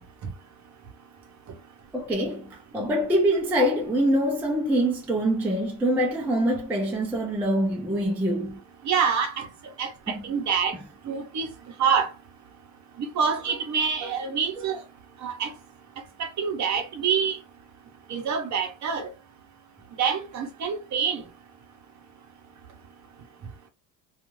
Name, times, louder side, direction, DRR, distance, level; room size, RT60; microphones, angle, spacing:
voice 1, 1.9-8.6 10.1-10.2 14.0-14.1 14.6-14.7, right 1 dB, 5° right, 0.3 m, -25 dB
voice 2, 8.8-9.5 9.8-9.9 10.2-10.8 11.1-11.5 11.8-12.1 13.0-14.8 15.2-15.5 16.2-17.4 18.1-19.1 20.0-21.2, right 6 dB, 40° right, 0.7 m, -26 dB
2.4 x 2.3 x 3.0 m
cardioid pair, 145°, 45 cm